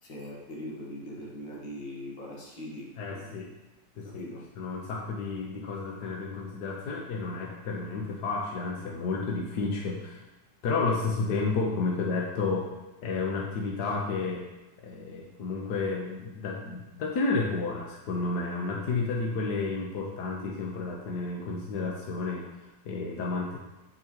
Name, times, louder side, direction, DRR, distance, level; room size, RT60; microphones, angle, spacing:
voice 1, 0.0-3.5 4.0-4.4, left 1 dB, 85° left, -3 dB, 2.3 m, -41 dB
voice 2, 3.0-3.5 4.0-4.3 4.6-10.2 10.6-12.7 13.0-14.4 14.8-23.6, left 3 dB, 65° left, -2 dB, 1.5 m, -31 dB
8.4 x 6.8 x 3.0 m, 1.0 s
omnidirectional pair, 2.0 m